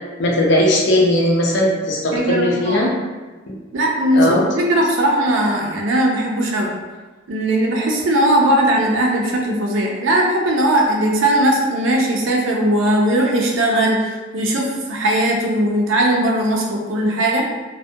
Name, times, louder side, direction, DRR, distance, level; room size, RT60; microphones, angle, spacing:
voice 1, 0.2-2.9 3.5-3.6 4.1-4.5, left 1 dB, 60° left, -1 dB, 0.5 m, -18 dB
voice 2, 2.1-2.9 3.7-6.7 7.3-17.5, right 1 dB, 70° right, -1 dB, 0.5 m, -18 dB
2.3 x 2.1 x 2.6 m, 1.3 s
head